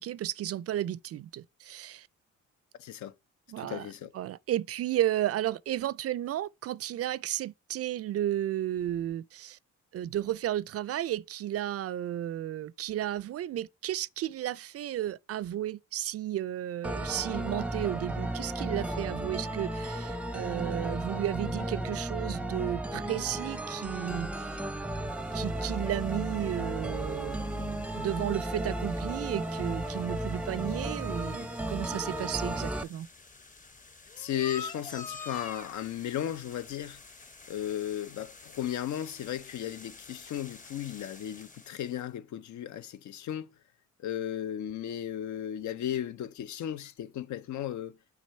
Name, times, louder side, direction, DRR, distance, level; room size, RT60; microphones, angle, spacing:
voice 1, 0.0-2.1 3.5-3.9 4.1-9.6 9.9-24.6 25.3-33.1, right 12 dB, 50° right, 0.4 m, -33 dB
voice 2, 2.8-3.1 3.6-4.1 34.2-37.0 37.5-43.5 44.0-48.0, left 11 dB, 70° left, 0.7 m, -35 dB
sound 1, 16.8-32.8, right 1 dB, 5° right, 0.6 m, -34 dB
sound 2, 25.0-42.0, left 4 dB, 25° left, 1.0 m, -49 dB
6.1 x 3.8 x 5.5 m
cardioid pair, 90°, 30 cm